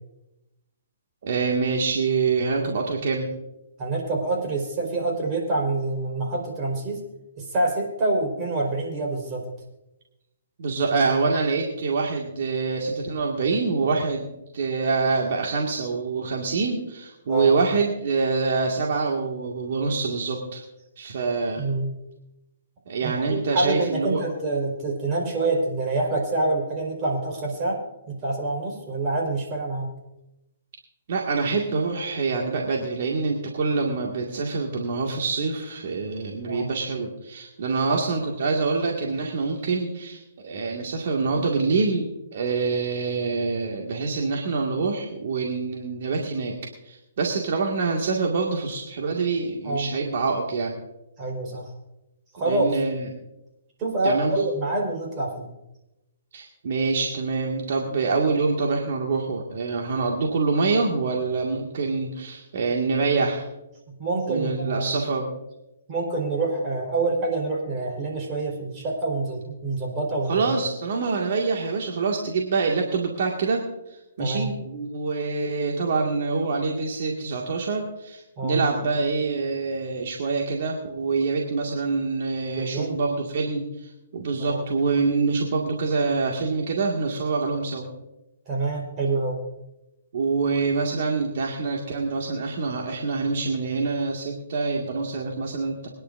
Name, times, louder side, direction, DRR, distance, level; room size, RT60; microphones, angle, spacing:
voice 1, 1.2-3.3 10.6-20.6 21.0-21.6 22.9-24.2 31.1-46.5 46.8-50.7 52.4-53.1 54.0-54.4 56.3-63.4 64.3-65.3 70.3-87.9 90.1-95.9, right 4 dB, 60° right, -1 dB, 2.1 m, -25 dB
voice 2, 3.8-7.0 7.4-9.4 17.3-17.5 21.6-21.9 23.0-27.8 28.1-29.9 36.5-36.7 49.6-49.9 51.2-51.6 52.3-52.6 53.8-55.5 64.0-64.9 65.9-70.5 74.2-74.5 78.4-78.6 82.6-83.0 84.4-84.6 88.5-89.4, right 2 dB, 30° right, 0 dB, 4.6 m, -26 dB
25.0 x 10.5 x 2.7 m, 0.94 s
hypercardioid pair, 140°, 0 cm